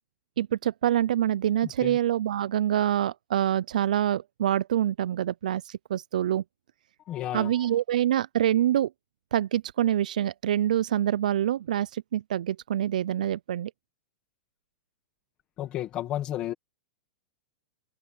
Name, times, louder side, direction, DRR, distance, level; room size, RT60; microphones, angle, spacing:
voice 1, 0.4-6.4 7.3-8.9 9.3-13.7, right 11 dB, 80° right, 0.3 m, -26 dB
voice 2, 1.6-2.0 7.1-7.7 15.6-16.5, left 13 dB, 20° left, 1.2 m, -33 dB
supercardioid pair, 175°, 4 cm